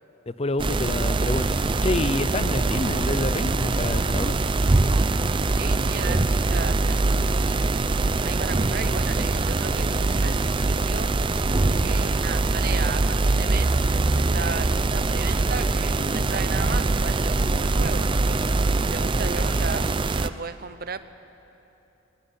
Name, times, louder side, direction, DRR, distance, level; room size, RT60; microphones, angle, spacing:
voice 1, 0.3-4.4, left 2 dB, 30° left, 14 dB, 0.6 m, -28 dB
sound 1, 0.6-20.3, right 3 dB, 25° right, 0.5 m, -23 dB
voice 2, 5.5-7.7 8.2-11.1 11.8-18.4 18.7-21.0, right 5 dB, 50° right, 12 dB, 0.8 m, -35 dB
21.5 x 18.0 x 9.9 m, 3.0 s
head